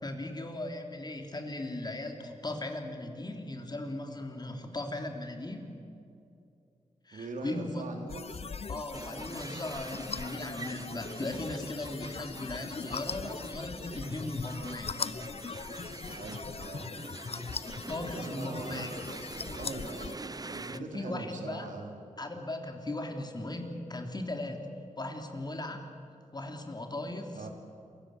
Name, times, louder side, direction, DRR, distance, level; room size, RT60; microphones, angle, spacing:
voice 1, 0.0-5.7 7.0-7.9 8.7-14.9 17.9-18.9 20.7-21.7 22.2-24.6 25.0-25.8 26.3-27.5, left 2 dB, 35° left, 4 dB, 3.4 m, -38 dB
voice 2, 7.1-8.5 16.1-16.9 18.2-18.9 19.5-21.9 27.3-27.5, right 3 dB, 85° right, 3 dB, 3.4 m, -42 dB
sound 1, 8.1-20.2, left 5 dB, 50° left, 0.8 m, -40 dB
sound 2, 8.9-20.8, right 3 dB, 30° right, 0.8 m, -45 dB
27.5 x 16.0 x 9.6 m, 2.6 s
cardioid pair, 70°, 13 cm